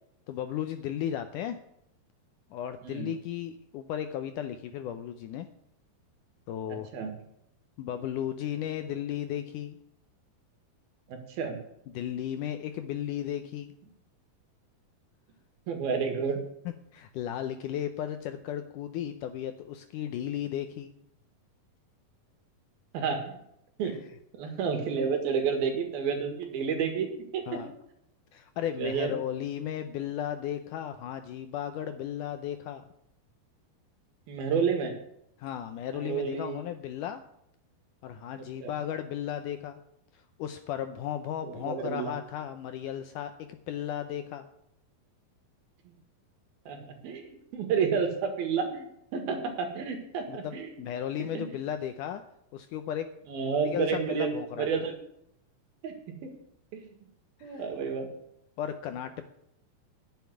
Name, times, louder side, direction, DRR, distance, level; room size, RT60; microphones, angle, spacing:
voice 1, 0.3-1.6 2.5-5.5 6.5-6.9 7.8-9.8 11.9-13.7 16.9-20.9 23.8-24.0 27.5-27.7 28.3-32.8 35.4-37.2 38.0-39.8 40.1-44.5 50.3-52.2 52.5-53.1 53.7-54.7 57.4-57.6 58.6-59.3, left 10 dB, 80° left, 9 dB, 1.9 m, -35 dB
voice 2, 11.1-11.6 15.7-16.4 22.9-23.4 23.8-24.0 24.4-27.6 28.8-29.2 34.3-35.0 35.9-36.6 38.4-38.7 41.4-42.2 46.7-50.7 51.2-51.6 53.3-55.0 55.8-56.3 56.7-56.9 57.4-58.1, right 6 dB, 75° right, 5 dB, 3.7 m, -30 dB
10.5 x 7.3 x 9.3 m, 0.75 s
omnidirectional pair, 4.3 m